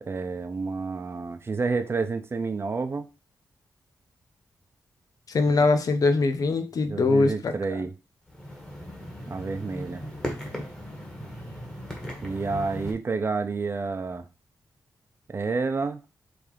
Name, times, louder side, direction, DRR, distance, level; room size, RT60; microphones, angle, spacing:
voice 1, 0.0-3.1 6.9-7.9 9.3-10.0 12.2-14.3 15.3-16.0, right 4 dB, 35° right, 0.7 m, -29 dB
voice 2, 5.3-7.5, left 3 dB, 60° left, 0.8 m, -22 dB
sound 1, 8.3-12.9, equal, 10° left, 1.8 m, -37 dB
5.4 x 3.5 x 5.0 m
wide cardioid pair, 130°, 7 cm